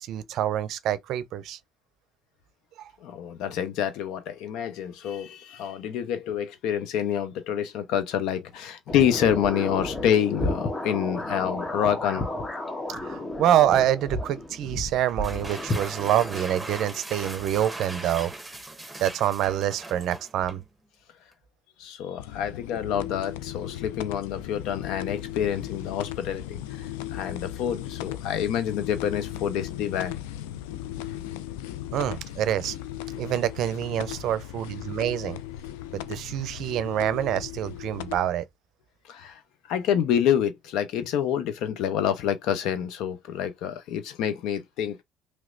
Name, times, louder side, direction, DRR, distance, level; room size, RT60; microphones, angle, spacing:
voice 1, 0.0-1.6 2.8-2.9 12.9-18.3 19.0-20.6 31.9-32.8 33.2-35.4 35.9-38.4, right 11 dB, 65° right, 0.5 m, -26 dB
voice 2, 3.0-12.3 21.8-30.2 39.1-39.4 39.7-45.0, left 9 dB, 75° left, 0.8 m, -27 dB
sound 1, 8.9-16.4, left 1 dB, 25° left, 1.1 m, -32 dB
sound 2, 15.1-20.7, right 2 dB, 10° right, 1.1 m, -39 dB
sound 3, 22.2-38.2, left 13 dB, 90° left, 0.3 m, -37 dB
3.2 x 3.0 x 2.5 m
supercardioid pair, 80°, 0 cm